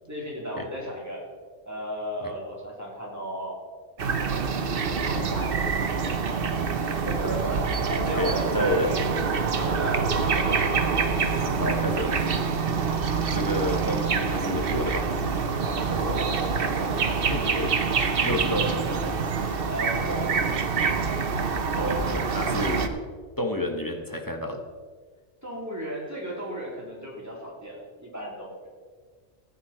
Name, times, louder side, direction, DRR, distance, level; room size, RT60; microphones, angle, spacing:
voice 1, 0.0-1.2 1.6-3.6 4.8-6.4 7.0-8.9 9.6-10.8 15.8-16.3 19.4-20.4 25.4-28.7, equal, 15° right, -4 dB, 3.4 m, -35 dB
sound 1, 4.0-22.9, right 5 dB, 55° right, 1.1 m, -26 dB
voice 2, 8.1-8.9 11.4-12.1 13.3-15.1 17.3-17.8 18.2-18.8 21.8-23.0 23.4-24.6, left 1 dB, 20° left, 3 dB, 1.1 m, -29 dB
15.5 x 9.7 x 4.4 m, 1.6 s
omnidirectional pair, 1.2 m